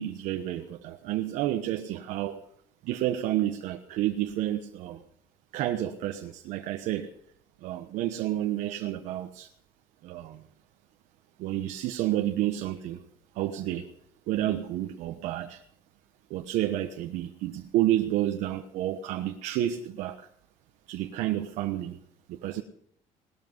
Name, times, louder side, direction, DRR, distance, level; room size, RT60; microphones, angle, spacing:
voice 1, 0.0-2.4 2.8-5.0 5.5-7.1 7.6-9.5 10.0-10.5 11.4-13.0 13.3-13.9 14.3-15.6 16.3-20.3 20.9-22.0 22.3-22.6, right 13 dB, 65° right, 6 dB, 1.2 m, -30 dB
19.0 x 13.0 x 5.4 m, 0.70 s
cardioid pair, 170°, 13 cm